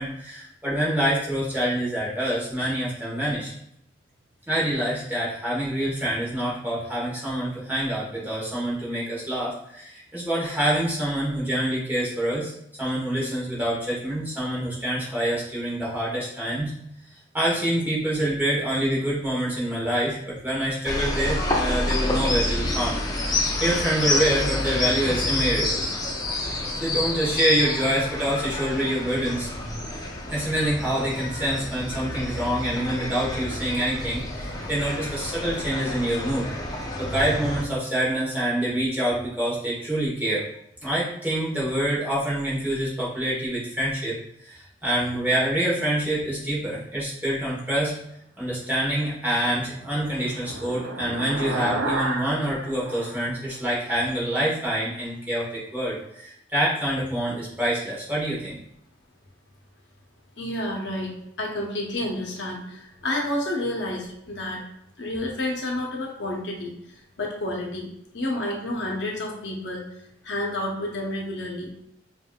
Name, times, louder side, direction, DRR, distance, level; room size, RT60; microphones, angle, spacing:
voice 1, 0.0-3.5 4.5-12.5 12.8-16.7 17.3-25.8 26.8-29.5 30.3-36.5 37.0-40.4 40.8-47.9 48.4-58.6, right 1 dB, 10° right, -7 dB, 1.1 m, -26 dB
sound 1, 20.8-37.6, left 2 dB, 20° left, 0.4 m, -28 dB
sound 2, 49.6-54.1, right 2 dB, 70° right, 0.5 m, -32 dB
voice 2, 60.4-64.6 65.0-67.9 68.1-69.9 70.2-71.8, left 1 dB, 70° left, -1 dB, 0.8 m, -30 dB
5.4 x 2.6 x 2.3 m, 0.74 s
head